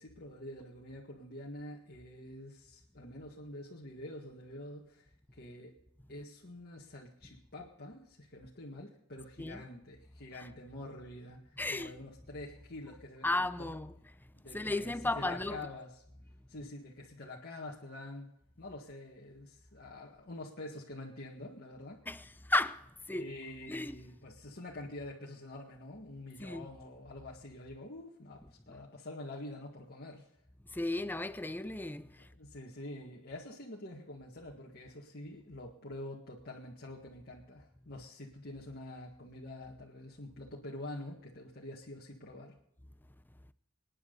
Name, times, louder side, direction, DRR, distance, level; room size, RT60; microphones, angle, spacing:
voice 1, 0.0-5.8 6.1-13.3 13.6-13.7 14.3-15.9 16.5-18.3 18.6-22.0 23.1-30.3 32.4-42.6, left 1 dB, 45° left, 1.8 m, -46 dB
voice 2, 11.6-12.0 13.2-15.7 22.1-23.3 23.7-23.9 26.4-26.7 28.7-28.8 30.7-32.3, left 2 dB, 10° left, 0.6 m, -35 dB
26.5 x 9.9 x 4.0 m
head